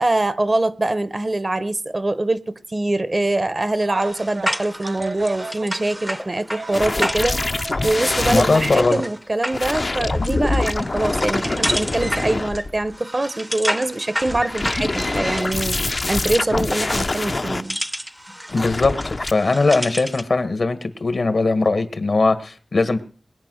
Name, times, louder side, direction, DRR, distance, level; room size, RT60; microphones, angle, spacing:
voice 1, 0.0-17.8, right 2 dB, 40° right, 0.8 m, -23 dB
Telephone, 3.8-5.7 6.6-8.5 9.8-10.0 11.5-11.7, right 3 dB, 80° right, 0.8 m, -34 dB
sound 1, 4.0-20.3, equal, 5° right, 0.6 m, -31 dB
sound 2, 6.7-8.9 9.5-13.0 14.2-17.6 18.5-19.3, left 2 dB, 50° left, 0.6 m, -25 dB
voice 2, 8.3-9.0 18.5-23.0, left 3 dB, 75° left, 1.6 m, -20 dB
21.0 x 8.6 x 6.4 m
wide cardioid pair, 65°, 0 cm